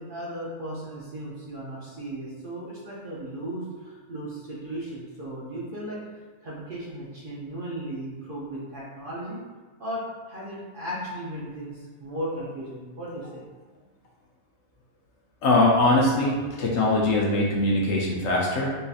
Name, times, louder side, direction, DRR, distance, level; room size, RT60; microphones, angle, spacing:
voice 1, 0.0-6.0 6.4-9.4 9.8-10.0 10.3-13.4, right 1 dB, 55° right, -7 dB, 0.6 m, -36 dB
voice 2, 15.4-18.8, left 2 dB, 65° left, -3 dB, 0.8 m, -22 dB
3.8 x 2.7 x 2.4 m, 1.4 s
omnidirectional pair, 1.4 m